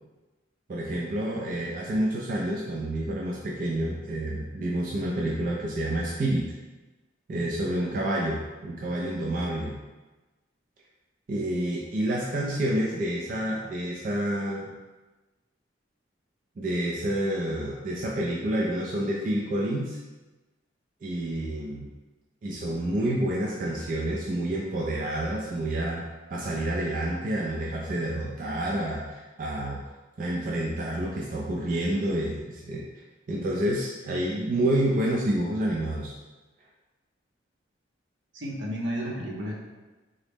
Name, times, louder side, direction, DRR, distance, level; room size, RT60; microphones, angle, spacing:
voice 1, 0.7-6.5 7.3-9.7 11.3-14.7 16.6-20.0 21.0-21.9 22.4-26.0 26.3-29.8 30.2-32.8 33.3-36.1, right 1 dB, 45° right, -3 dB, 0.3 m, -28 dB
voice 2, 38.3-39.5, equal, 80° right, -3 dB, 0.8 m, -32 dB
3.8 x 2.0 x 3.3 m, 1.2 s
head